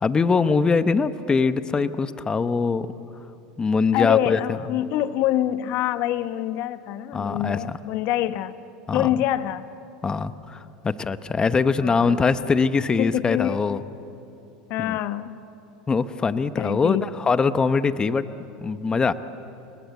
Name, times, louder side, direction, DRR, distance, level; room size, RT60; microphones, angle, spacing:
voice 1, 0.0-2.9 3.6-4.4 7.1-7.6 8.9-9.1 10.0-13.8 14.8-15.0 15.9-18.2 18.6-19.1, left 4 dB, 20° left, 12 dB, 0.9 m, -22 dB
voice 2, 3.9-8.5 8.9-9.7 11.8-12.2 13.0-13.8 14.7-15.4 16.5-17.1, left 13 dB, 55° left, 12 dB, 1.1 m, -25 dB
29.5 x 20.0 x 8.3 m, 3.0 s
supercardioid pair, 105°, 4 cm